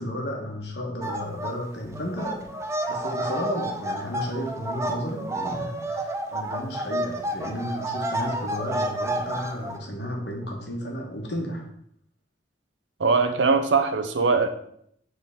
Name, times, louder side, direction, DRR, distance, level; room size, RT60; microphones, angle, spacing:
voice 1, 0.0-2.5 2.9-11.7, equal, 65° left, 1 dB, 1.4 m, -33 dB
sound 1, 1.0-1.5 1.8-9.8, right 1 dB, 15° right, 0.5 m, -30 dB
voice 2, 13.0-14.5, right 4 dB, 90° right, 7 dB, 0.7 m, -21 dB
6.9 x 3.8 x 3.6 m, 0.69 s
head